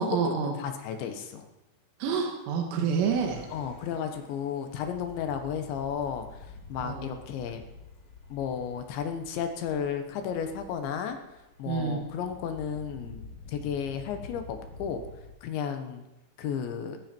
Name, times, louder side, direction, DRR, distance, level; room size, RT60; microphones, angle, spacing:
voice 1, 0.0-0.5 2.0-3.4 6.8-7.1 11.7-12.0, right 6 dB, 85° right, 2 dB, 4.3 m, -28 dB
voice 2, 0.6-1.5 3.5-7.6 8.3-11.2 11.6-13.2 13.5-15.0 15.4-16.0 16.4-17.0, left 7 dB, 75° left, 6 dB, 3.4 m, -33 dB
sound 1, 3.0-15.3, left 4 dB, 45° left, 5.2 m, -48 dB
18.0 x 15.5 x 4.5 m, 0.97 s
omnidirectional pair, 5.6 m